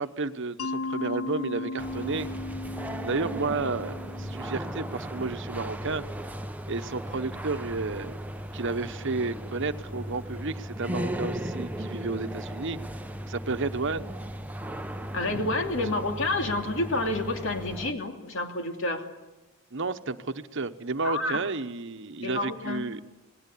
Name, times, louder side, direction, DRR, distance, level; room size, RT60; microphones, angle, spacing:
voice 1, 0.0-2.3 3.0-6.0 6.7-8.1 8.5-12.8 13.3-14.1 15.8-15.9 19.7-23.0, right 3 dB, 60° right, 10 dB, 1.1 m, -32 dB
Mallet percussion, 0.6-5.4, left 2 dB, 90° left, 0.7 m, -36 dB
sound 1, 1.8-17.9, equal, 5° right, 0.9 m, -36 dB
voice 2, 15.1-19.0 21.0-21.4 22.2-22.9, left 2 dB, 65° left, 4 dB, 2.7 m, -29 dB
28.0 x 19.5 x 8.5 m, 1.1 s
head